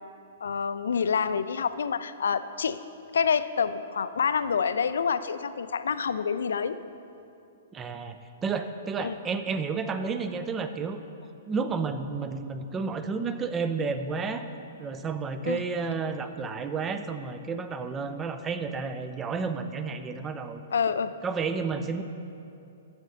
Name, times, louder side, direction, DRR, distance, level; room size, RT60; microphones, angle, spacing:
voice 1, 0.4-2.8 3.1-6.8 9.0-9.2 15.4-15.6 20.7-21.1, left 6 dB, 70° left, 13 dB, 0.3 m, -27 dB
voice 2, 7.7-11.0 11.5-14.4 14.8-20.6 21.2-22.0, right 5 dB, 20° right, 9 dB, 0.5 m, -31 dB
10.5 x 7.1 x 4.0 m, 2.7 s
figure-of-eight pair, 115°, 0 cm